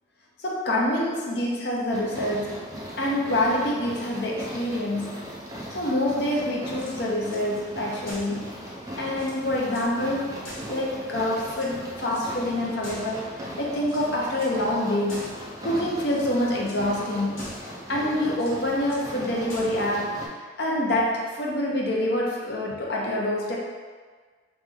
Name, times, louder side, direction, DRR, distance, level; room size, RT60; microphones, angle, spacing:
voice 1, 0.4-2.6 3.0-5.3 5.7-8.5 9.0-15.3 15.6-17.5 17.9-20.2 20.6-23.6, left 1 dB, 55° left, -3 dB, 0.7 m, -26 dB
sound 1, 1.9-20.3, equal, 15° right, 0.4 m, -38 dB
sound 2, 6.6-7.4 8.0-8.4 8.8-8.9 9.1-9.9 10.4-11.1 11.5-12.3 12.8-13.4 13.8-14.6 15.1-15.5 16.0-16.3 16.6-16.8 17.3-17.8 18.3-19.1 19.5-19.9, left 1 dB, 90° left, 1.2 m, -43 dB
3.1 x 3.1 x 3.6 m, 1.5 s
head